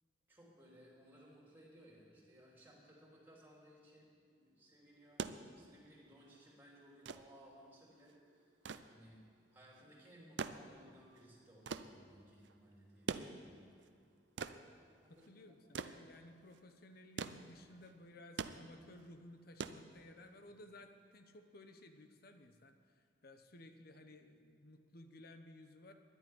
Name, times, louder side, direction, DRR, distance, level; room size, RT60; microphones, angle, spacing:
voice 1, 0.3-8.6 8.9-9.2 9.5-13.6 14.6-15.6, equal, 10° right, -3 dB, 3.3 m, -61 dB
sound 1, 4.9-20.5 21.7-21.8, right 5 dB, 80° right, 0.5 m, -47 dB
voice 2, 15.1-25.9, left 1 dB, 60° left, 7 dB, 0.9 m, -57 dB
11.0 x 9.2 x 9.8 m, 2.2 s
head